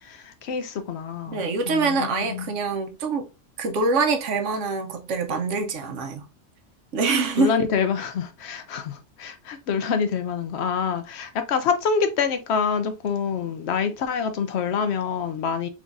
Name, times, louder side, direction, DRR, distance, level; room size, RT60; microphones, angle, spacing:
voice 1, 0.1-2.4 7.4-15.7, left 6 dB, 70° left, 0.8 m, -26 dB
voice 2, 1.3-3.3 3.6-6.3 6.9-7.5, right 4 dB, 85° right, 1.1 m, -25 dB
3.8 x 3.5 x 2.5 m
omnidirectional pair, 1.2 m